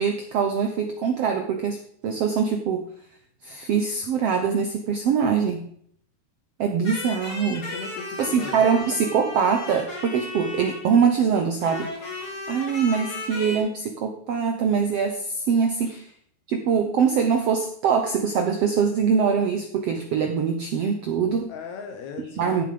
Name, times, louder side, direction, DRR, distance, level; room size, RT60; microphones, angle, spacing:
voice 1, 0.0-1.8 2.0-2.8 3.4-5.6 6.6-7.7 8.2-16.1 16.5-21.5 22.4-22.6, right 6 dB, 75° right, 5 dB, 1.4 m, -23 dB
sound 1, 6.8-11.1 11.6-13.6, left 3 dB, 40° left, 3.9 m, -35 dB
voice 2, 7.7-8.6 15.9-16.0 21.5-22.6, left 5 dB, 70° left, 7 dB, 1.9 m, -37 dB
14.5 x 7.1 x 5.1 m, 0.62 s
omnidirectional pair, 4.1 m